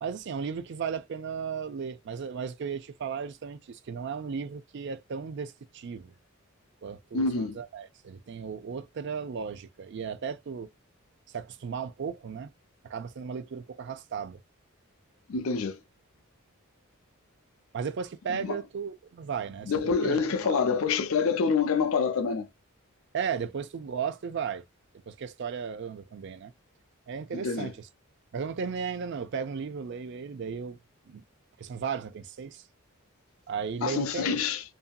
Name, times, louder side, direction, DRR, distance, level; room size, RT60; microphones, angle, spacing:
voice 1, 0.0-6.1 6.8-10.7 11.3-12.5 12.8-14.4 17.7-19.7 20.0-20.6 23.1-24.6 25.1-26.5 27.1-27.9 28.3-30.8 31.1-31.2 31.6-32.6 33.5-34.4, right 6 dB, 55° right, 0.4 m, -35 dB
voice 2, 7.1-7.6 15.3-15.8 18.3-18.6 19.7-22.5 27.3-27.7 33.8-34.6, left 5 dB, 75° left, 0.5 m, -27 dB
2.6 x 2.6 x 2.2 m
head